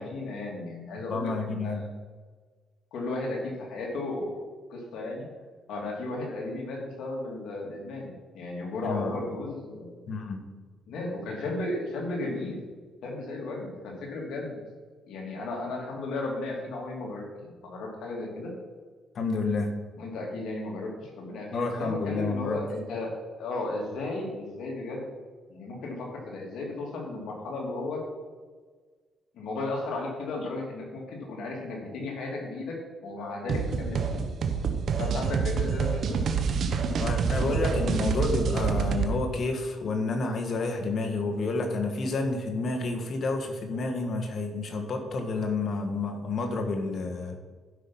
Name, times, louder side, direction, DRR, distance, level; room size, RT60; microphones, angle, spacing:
voice 1, 0.0-1.9 2.9-4.4 4.7-5.2 5.7-9.9 10.9-12.6 13.0-14.6 15.1-18.5 20.0-23.1 23.4-25.1 25.5-28.0 29.3-32.8 33.0-34.2 35.0-36.2, left 2 dB, 75° left, -1 dB, 2.9 m, -34 dB
voice 2, 1.1-1.9 8.8-9.2 10.1-10.4 19.1-19.7 21.5-22.6 37.0-47.4, left 3 dB, 55° left, 4 dB, 1.6 m, -29 dB
sound 1, 33.5-39.1, right 6 dB, 60° right, 1.1 m, -27 dB
11.5 x 5.9 x 5.6 m, 1.4 s
cardioid pair, 90°, 0 cm